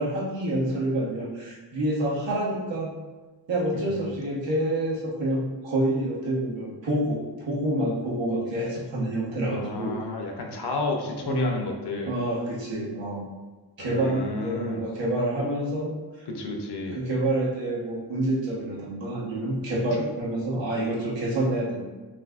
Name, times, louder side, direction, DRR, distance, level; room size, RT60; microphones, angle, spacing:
voice 1, 0.0-2.9 3.5-9.9 11.3-11.6 12.0-13.2 13.8-16.3 16.9-21.8, right 1 dB, 85° right, -5 dB, 1.3 m, -27 dB
voice 2, 3.7-4.1 9.5-12.1 13.8-14.9 16.3-17.0, left 3 dB, 65° left, 2 dB, 0.7 m, -32 dB
5.7 x 2.8 x 2.4 m, 1.3 s
wide cardioid pair, 165°, 43 cm